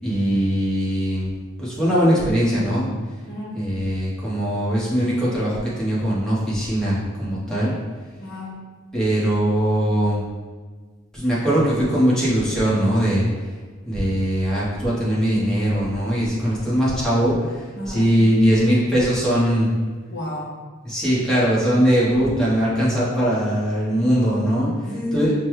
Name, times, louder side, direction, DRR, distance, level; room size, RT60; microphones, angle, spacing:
voice 1, 0.0-1.3 1.6-3.0 3.5-7.7 8.9-10.2 11.1-13.2 13.8-19.7 20.8-24.7 25.1-25.3, equal, 5° left, -9 dB, 0.9 m, -20 dB
voice 2, 3.3-3.6 8.2-8.7 17.7-18.1 20.1-20.6 24.8-25.3, left 1 dB, 55° left, -3 dB, 0.9 m, -31 dB
5.2 x 2.2 x 3.0 m, 1.4 s
head